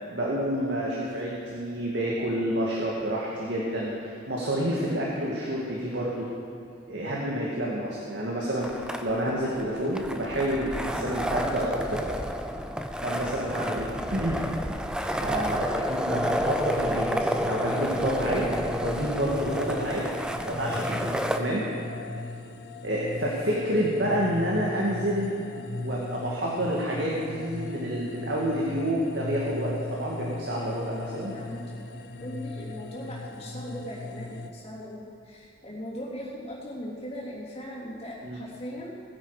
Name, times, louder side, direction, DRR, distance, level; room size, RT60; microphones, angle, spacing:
voice 1, 0.1-6.3 6.9-12.0 13.0-14.4 15.1-18.5 18.8-20.1 20.4-21.6 22.8-25.3 25.8-31.3 38.2-38.4, equal, 75° right, -4 dB, 2.0 m, -29 dB
sound 1, 8.6-21.4, equal, 5° right, 0.6 m, -30 dB
sound 2, 16.1-34.5, left 2 dB, 60° left, 0.8 m, -38 dB
voice 2, 31.0-31.6 32.2-38.9, equal, 35° left, -5 dB, 3.2 m, -39 dB
19.5 x 9.8 x 5.0 m, 2.4 s
head